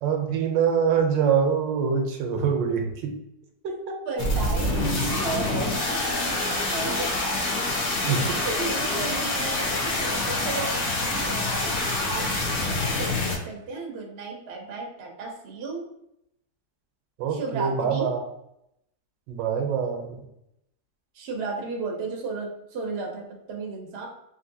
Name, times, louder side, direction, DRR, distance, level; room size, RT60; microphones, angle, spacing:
voice 1, 0.0-3.1 3.6-4.0 8.0-8.4 17.2-18.2 19.3-20.2, right 6 dB, 90° right, 4 dB, 1.3 m, -24 dB
voice 2, 4.0-7.2 8.2-11.8 12.1-12.7 13.0-15.9 17.3-18.1 21.1-24.1, right 4 dB, 65° right, 1 dB, 0.6 m, -34 dB
sound 1, 4.2-13.4, left 2 dB, 75° left, 1.5 m, -26 dB
3.5 x 2.6 x 2.6 m, 0.80 s
omnidirectional pair, 1.9 m